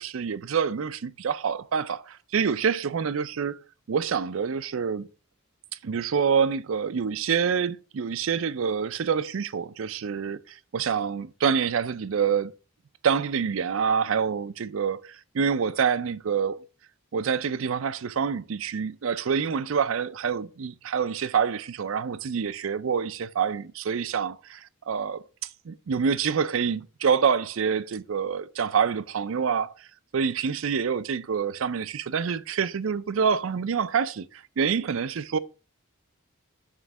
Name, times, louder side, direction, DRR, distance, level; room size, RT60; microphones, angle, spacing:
voice 1, 0.0-3.6 3.9-5.1 5.8-12.5 13.0-16.6 17.1-25.2 25.7-29.7 30.1-35.4, right 6 dB, 65° right, 0.4 m, -27 dB
7.5 x 3.1 x 5.9 m
head